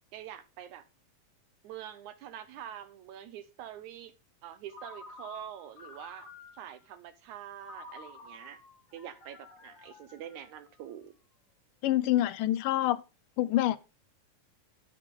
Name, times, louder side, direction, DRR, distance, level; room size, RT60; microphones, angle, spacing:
voice 1, 0.1-0.9 1.6-4.1 4.4-6.3 6.5-8.6 8.9-11.2, right 10 dB, 75° right, 1.9 m, -45 dB
Ringtone, 4.7-6.8 7.6-11.0, left 3 dB, 35° left, 2.4 m, -51 dB
voice 2, 11.8-13.0 13.4-13.8, left 14 dB, 80° left, 2.2 m, -26 dB
12.0 x 9.9 x 3.7 m
omnidirectional pair, 4.0 m